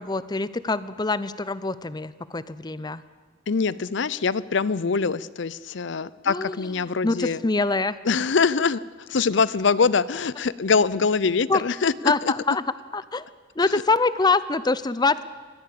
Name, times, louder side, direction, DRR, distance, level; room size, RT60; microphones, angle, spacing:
voice 1, 0.0-3.0 6.3-6.7 7.0-8.0 11.5-11.6 12.0-12.6 12.9-13.2 13.6-15.2, left 3 dB, 20° left, 16 dB, 0.7 m, -24 dB
voice 2, 3.5-7.4 8.0-12.3 13.6-13.8, left 5 dB, 65° left, 19 dB, 0.6 m, -24 dB
22.0 x 15.5 x 8.6 m, 1.4 s
head